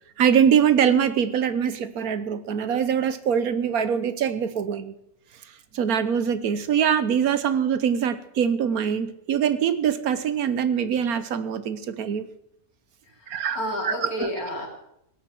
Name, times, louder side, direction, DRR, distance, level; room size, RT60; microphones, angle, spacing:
voice 1, 0.2-4.9 5.7-12.2 13.3-14.3, right 8 dB, 80° right, 13 dB, 1.4 m, -23 dB
voice 2, 13.1-14.7, left 1 dB, 80° left, 0 dB, 4.2 m, -31 dB
17.5 x 8.4 x 7.7 m, 0.77 s
omnidirectional pair, 1.5 m